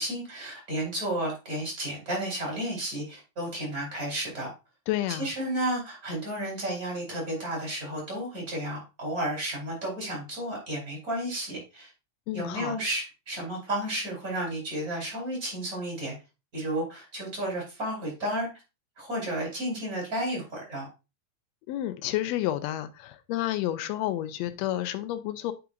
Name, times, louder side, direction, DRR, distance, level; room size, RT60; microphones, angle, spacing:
voice 1, 0.0-4.5 5.2-11.9 12.3-16.1 16.5-18.5 19.0-20.9, right 1 dB, 30° right, -2 dB, 3.7 m, -32 dB
voice 2, 4.9-5.3 12.3-12.8 21.7-25.5, left 13 dB, 80° left, 11 dB, 1.7 m, -30 dB
8.6 x 5.1 x 2.5 m, 0.28 s
omnidirectional pair, 3.4 m